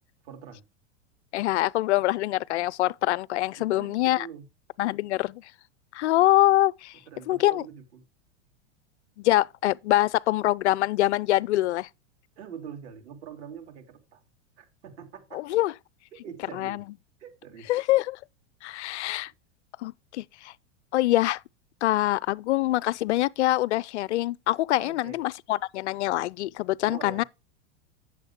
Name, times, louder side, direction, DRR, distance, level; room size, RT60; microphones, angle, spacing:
voice 1, 0.2-0.6 3.6-4.4 7.1-8.0 12.4-14.2 14.6-15.6 16.1-16.8 17.2-17.7 24.8-25.2 26.8-27.3, right 8 dB, 65° right, 3.1 m, -44 dB
voice 2, 1.3-4.3 4.8-5.4 5.9-7.0 7.3-7.6 9.2-11.9 15.3-15.7 16.6-16.8 17.7-18.2 18.6-19.3 19.8-20.5 20.9-21.4 21.8-27.2, left 15 dB, 70° left, 0.5 m, -24 dB
9.1 x 7.2 x 3.6 m
hypercardioid pair, 100°, 36 cm